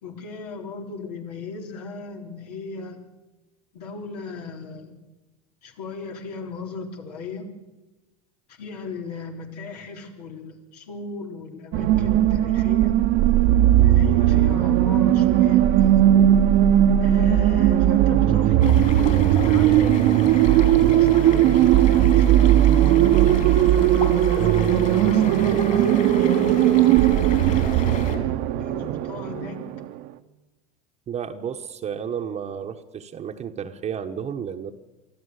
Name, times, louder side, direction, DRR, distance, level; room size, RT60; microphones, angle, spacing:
voice 1, 0.0-3.0 3.7-4.9 5.6-7.5 8.6-13.0 13.8-16.0 17.0-22.6 23.9-29.8, left 4 dB, 80° left, 2 dB, 3.7 m, -37 dB
sound 1, 11.7-30.0, right 12 dB, 55° right, 1.1 m, -18 dB
sound 2, 18.6-28.2, left 6 dB, 40° left, 3.9 m, -35 dB
voice 2, 31.1-34.7, right 8 dB, 35° right, 4 dB, 1.2 m, -32 dB
24.0 x 14.0 x 8.2 m, 1.1 s
hypercardioid pair, 95°, 20 cm